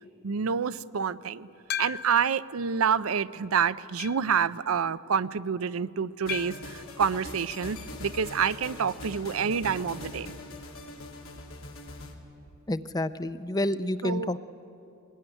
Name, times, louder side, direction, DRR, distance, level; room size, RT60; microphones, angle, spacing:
voice 1, 0.2-1.5 1.8-10.3 14.0-14.3, right 6 dB, 85° right, 15 dB, 0.5 m, -28 dB
sound 1, 1.7-2.4 3.0-3.1 4.0-4.4 6.3-6.8 8.4-8.7 9.0-9.1 9.3-9.4 11.4-11.5, left 9 dB, 50° left, 0.8 m, -36 dB
sound 2, 6.3-12.1, left 2 dB, 85° left, 2.9 m, -42 dB
voice 2, 12.7-14.4, left 1 dB, 20° left, 13 dB, 0.5 m, -29 dB
21.0 x 20.0 x 10.0 m, 2.7 s
head